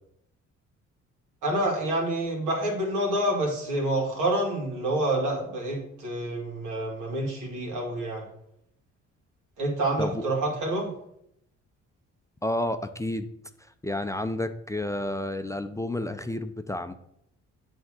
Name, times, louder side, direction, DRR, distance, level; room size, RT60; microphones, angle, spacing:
voice 1, 1.4-8.2 9.6-10.9, right 1 dB, 90° right, -1 dB, 2.4 m, -28 dB
voice 2, 12.4-13.3 13.8-16.9, left 1 dB, 10° left, 8 dB, 0.4 m, -30 dB
8.0 x 3.5 x 6.2 m, 0.75 s
cardioid pair, 90°, 30 cm